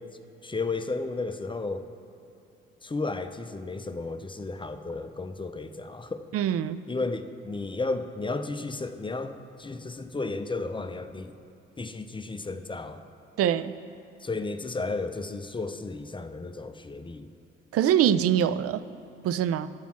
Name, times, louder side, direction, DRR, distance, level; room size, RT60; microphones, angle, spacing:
voice 1, 0.4-1.8 2.8-6.2 6.9-11.3 11.8-13.0 14.2-17.3, left 3 dB, 15° left, 9 dB, 0.6 m, -33 dB
voice 2, 6.3-6.8 13.4-13.7 17.7-18.8 19.2-19.7, right 10 dB, 50° right, 14 dB, 0.5 m, -23 dB
10.5 x 7.1 x 5.9 m, 2.8 s
figure-of-eight pair, 45°, 30 cm